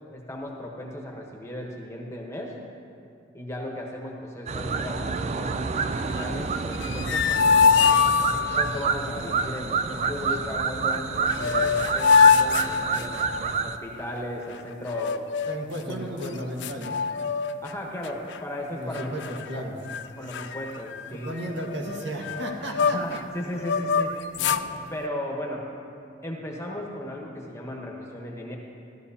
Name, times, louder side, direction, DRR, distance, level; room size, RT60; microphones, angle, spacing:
voice 1, 0.1-2.5 3.3-8.1 8.6-13.3 13.6-15.2 15.8-16.0 17.6-19.6 20.2-21.3 22.8-24.1 24.9-25.7 26.2-28.6, left 1 dB, 15° left, -1 dB, 1.0 m, -36 dB
sound 1, 4.5-13.8, right 5 dB, 35° right, 0.3 m, -28 dB
sound 2, 6.7-8.8 10.9-11.0 11.3-13.5 14.9-15.7 16.2-16.3 16.6-17.7 18.0-18.4 18.9-19.6 19.9-20.0 20.3-23.2 23.6-24.7, left 6 dB, 65° left, 0.3 m, -23 dB
voice 2, 15.5-17.0 18.7-20.0 21.1-23.2 24.4-24.6, equal, 70° right, -1 dB, 1.6 m, -34 dB
14.5 x 12.5 x 2.8 m, 2.6 s
head